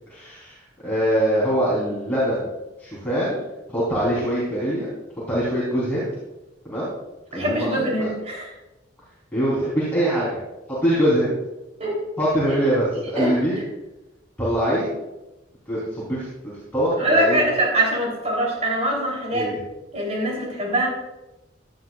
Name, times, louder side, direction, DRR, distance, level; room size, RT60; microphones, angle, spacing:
voice 1, 0.1-0.6 0.8-2.5 2.8-3.4 3.7-4.9 5.3-6.1 6.6-6.9 7.3-8.1 9.3-10.4 10.8-11.3 12.2-12.9 13.1-13.6 14.4-14.9 15.7-17.4 19.3-19.6, equal, 10° left, -9 dB, 4.0 m, -23 dB
voice 2, 7.3-8.5 11.8-12.0 13.1-13.4 17.0-19.5 19.9-20.9, right 1 dB, 35° right, -2 dB, 3.8 m, -23 dB
17.0 x 11.0 x 2.5 m, 1.0 s
head